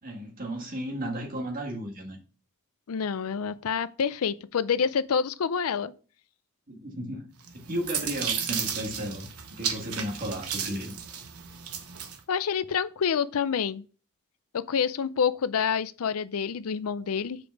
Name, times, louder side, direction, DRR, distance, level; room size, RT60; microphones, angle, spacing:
voice 1, 0.0-2.2 6.7-9.3 9.6-10.9, equal, 40° right, 1.9 m, -34 dB
voice 2, 2.9-5.9 12.3-13.8 14.5-17.4, left 6 dB, 75° left, 0.5 m, -27 dB
sound 1, 7.4-12.2, right 7 dB, 90° right, 1.0 m, -34 dB
6.8 x 5.2 x 4.6 m
head